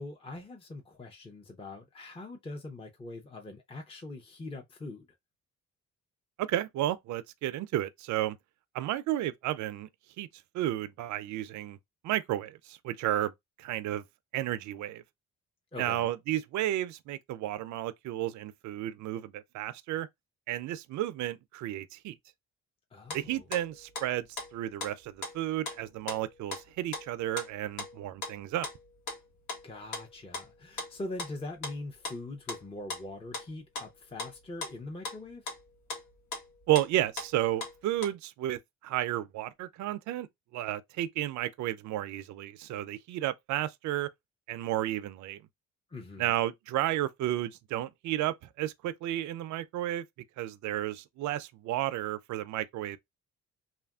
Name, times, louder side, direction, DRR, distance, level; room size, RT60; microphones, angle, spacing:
voice 1, 0.0-5.1 15.7-16.1 22.9-23.5 29.6-35.4 45.9-46.3, left 2 dB, 20° left, 0.6 m, -42 dB
voice 2, 6.4-8.4 8.7-9.9 10.2-10.3 10.5-11.8 12.0-13.3 13.6-14.0 14.3-15.0 15.8-20.1 20.5-22.2 23.1-28.7 36.7-40.3 40.5-44.1 44.5-45.4 46.2-50.0 50.4-53.0, right 14 dB, 70° right, 0.4 m, -32 dB
sound 1, 23.1-24.1 24.4-24.9 25.2-26.6 26.9-27.5 27.8-28.3 28.6-29.2 29.5-30.5 30.8-33.5 33.8-33.9 34.2-35.2 35.5-35.6 35.9-37.3 37.6-38.1, left 3 dB, 80° left, 1.2 m, -39 dB
3.0 x 2.5 x 2.3 m
cardioid pair, 90°, 30 cm